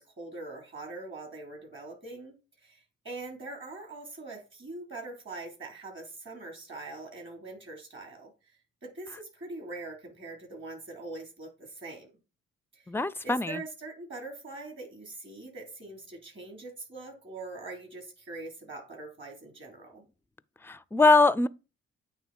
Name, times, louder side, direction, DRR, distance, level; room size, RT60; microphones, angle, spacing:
voice 1, 0.0-2.4 2.6-8.3 8.8-12.1 12.7-12.9 13.2-20.0, right 2 dB, 40° right, 4.1 m, -43 dB
voice 2, 12.9-13.6 20.6-21.5, left 3 dB, 10° left, 0.4 m, -22 dB
9.0 x 3.2 x 4.5 m
supercardioid pair, 55°, 29 cm